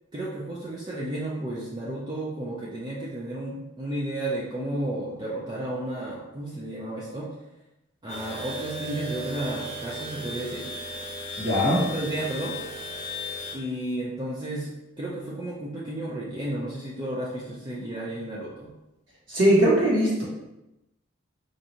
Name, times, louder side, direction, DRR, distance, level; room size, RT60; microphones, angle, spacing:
voice 1, 0.1-7.3 8.0-10.7 11.6-12.6 13.5-14.7 15.0-18.7, right 1 dB, 20° right, -5 dB, 0.4 m, -32 dB
sound 1, 8.1-13.5, left 1 dB, 30° left, 0.9 m, -36 dB
voice 2, 11.4-11.8 19.3-20.2, equal, 70° right, -6 dB, 1.5 m, -20 dB
4.7 x 2.6 x 2.8 m, 0.93 s
head